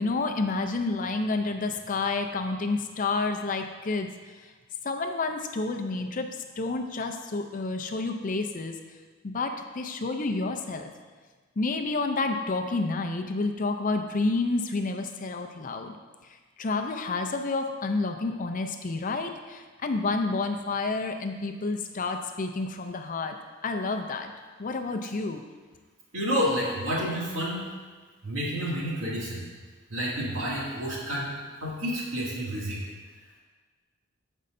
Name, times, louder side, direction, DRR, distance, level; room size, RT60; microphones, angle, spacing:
voice 1, 0.0-4.1 4.8-6.3 6.6-8.8 9.2-10.9 11.6-15.9 16.6-23.3 23.6-24.3 24.6-25.4, left 3 dB, 40° left, 5 dB, 0.5 m, -29 dB
voice 2, 26.1-27.6 28.2-29.4 29.9-31.3 31.6-32.8, equal, 70° right, -6 dB, 2.3 m, -29 dB
14.0 x 5.4 x 2.6 m, 1.4 s
head